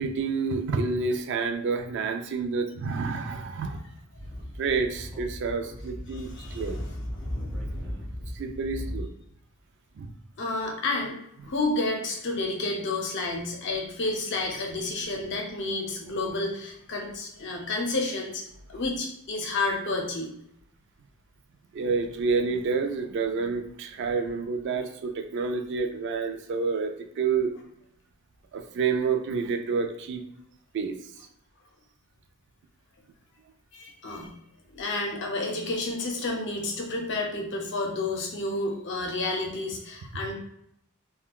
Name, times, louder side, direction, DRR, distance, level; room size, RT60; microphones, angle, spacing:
voice 1, 0.0-3.8 4.6-6.8 8.3-9.1 10.0-10.1 21.7-27.5 28.5-30.2 30.7-31.0, right 4 dB, 55° right, 6 dB, 0.3 m, -28 dB
Speech / Wind, 4.1-9.0, equal, 5° left, 0.6 m, -36 dB
voice 2, 6.1-6.6 10.4-11.2 11.4-18.4 18.7-20.3 33.7-34.3 34.7-40.3, left 2 dB, 55° left, 1 dB, 0.6 m, -30 dB
3.6 x 2.2 x 2.3 m, 0.76 s
head